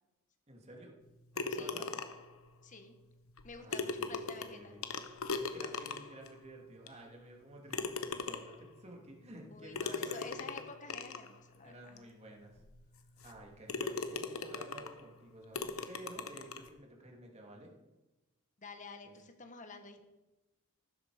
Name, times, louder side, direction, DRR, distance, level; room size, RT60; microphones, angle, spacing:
voice 1, 0.5-0.9 1.3-1.9 3.6-4.8 5.4-10.4 11.6-12.6 13.2-17.7 19.0-19.1, right 1 dB, 30° right, 0 dB, 2.9 m, -52 dB
sound 1, 1.4-2.3 3.4-3.5 3.7-6.3 6.9-7.0 7.7-8.7 9.8-11.3 12.0-12.1 12.6-12.7 13.2-13.4 13.7-15.0 15.5-16.7, left 4 dB, 75° left, 1.2 m, -39 dB
voice 2, 2.6-2.9 3.4-4.7 9.5-12.0 18.6-20.0, left 4 dB, 35° left, 7 dB, 1.3 m, -50 dB
15.0 x 13.0 x 5.1 m, 1.0 s
head